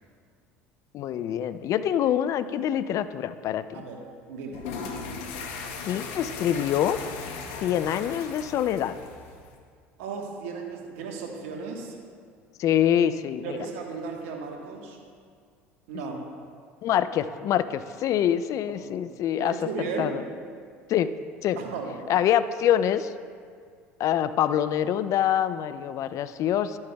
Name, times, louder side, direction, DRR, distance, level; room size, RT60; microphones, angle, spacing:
voice 1, 0.9-3.8 5.8-7.0 7.6-9.0 12.6-13.6 16.8-20.2 20.9-21.1 21.4-21.6 22.1-23.1 24.0-26.8, left 10 dB, 50° left, 14 dB, 0.4 m, -25 dB
voice 2, 4.3-4.7 10.0-12.0 13.4-15.0 15.9-16.2 19.0-20.2 21.6-21.9, right 4 dB, 75° right, 2 dB, 1.2 m, -35 dB
sound 1, 4.5-9.6, left 5 dB, 70° left, 0.9 m, -37 dB
12.0 x 8.6 x 2.3 m, 2.1 s
hypercardioid pair, 75°, 7 cm